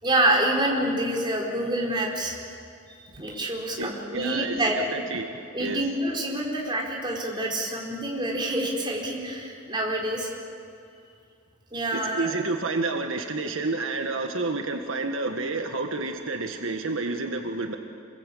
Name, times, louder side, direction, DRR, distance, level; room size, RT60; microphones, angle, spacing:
voice 1, 0.0-2.4 2.9-4.9 5.5-10.3 11.7-12.3, right 1 dB, 25° right, -1 dB, 4.5 m, -27 dB
voice 2, 3.8-5.8 11.9-17.8, right 3 dB, 75° right, 4 dB, 1.6 m, -30 dB
27.0 x 22.5 x 8.6 m, 2.4 s
head